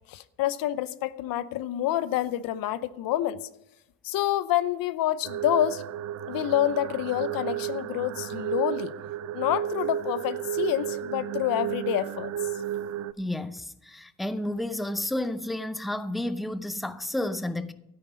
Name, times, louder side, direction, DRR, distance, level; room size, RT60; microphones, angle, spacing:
voice 1, 0.1-3.4 4.0-5.8 6.3-8.9 9.3-12.3, left 13 dB, 85° left, 0.8 m, -27 dB
sound 1, 5.2-13.1, right 11 dB, 50° right, 0.5 m, -32 dB
voice 2, 13.2-17.7, left 1 dB, ahead, 0.5 m, -31 dB
13.0 x 9.6 x 5.0 m
cardioid pair, 135°, 33 cm